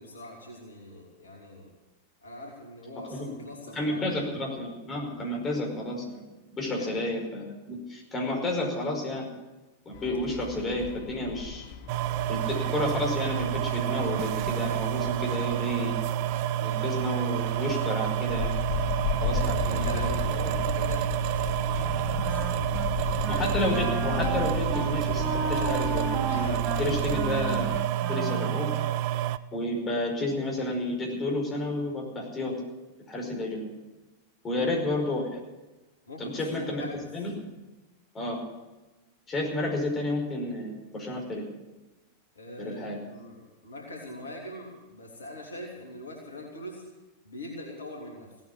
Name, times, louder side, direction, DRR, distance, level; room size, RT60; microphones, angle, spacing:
voice 1, 0.0-1.7 2.2-4.2 5.5-5.6 6.7-6.9 19.4-23.4 34.5-34.7 36.1-37.0 42.3-46.8 47.2-48.3, left 1 dB, 70° left, -1 dB, 3.1 m, -43 dB
voice 2, 3.8-6.2 6.5-9.3 9.9-11.7 12.3-16.0 16.6-18.5 19.2-20.1 23.3-27.8 28.1-28.7 29.5-32.5 33.1-33.7 34.4-35.4 36.2-36.9 37.1-37.4 38.1-38.4 39.3-41.4 42.6-43.0, left 1 dB, 20° left, 0 dB, 5.2 m, -31 dB
sound 1, 9.9-27.8, left 9 dB, 50° left, 1.0 m, -36 dB
sound 2, 11.9-29.4, right 12 dB, 45° right, 0.5 m, -29 dB
Wind instrument woodwind instrument, 21.8-22.9 23.2-23.5 23.7-29.0, right 3 dB, 25° right, 1.9 m, -34 dB
17.0 x 9.5 x 8.6 m, 1.1 s
figure-of-eight pair, 90°, 0 cm